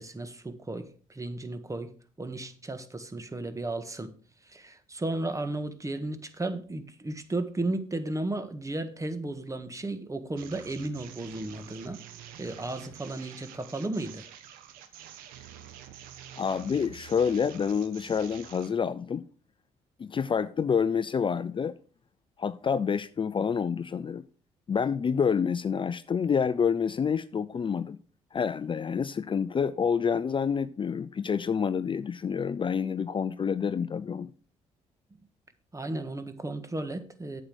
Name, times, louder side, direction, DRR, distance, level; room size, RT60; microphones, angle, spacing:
voice 1, 0.0-1.9 2.2-4.1 4.4-12.0 12.4-14.2 35.7-37.4, right 2 dB, 20° right, 1.6 m, -34 dB
sound 1, 10.4-18.7, right 10 dB, 80° right, 1.1 m, -48 dB
voice 2, 16.4-19.3 20.0-21.8 22.4-24.2 24.7-28.0 28.3-34.3, left 6 dB, 35° left, 0.5 m, -28 dB
8.7 x 7.6 x 4.9 m
hypercardioid pair, 55°, 15 cm